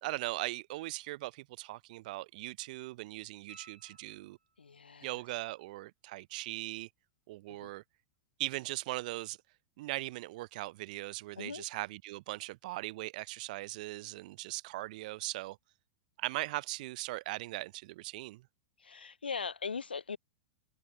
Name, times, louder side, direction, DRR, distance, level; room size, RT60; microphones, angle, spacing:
voice 1, 0.0-4.4 5.0-6.9 7.3-7.8 8.4-9.4 9.8-15.6 16.2-18.4, right 19 dB, 55° right, 2.3 m, -39 dB
sound 1, 3.5-4.8 7.6-7.7, right 4 dB, 80° right, 3.6 m, -59 dB
voice 2, 4.6-5.1 7.5-7.7 11.4-11.6 18.8-20.2, left 5 dB, 80° left, 1.7 m, -40 dB
figure-of-eight pair, 95°, 5 cm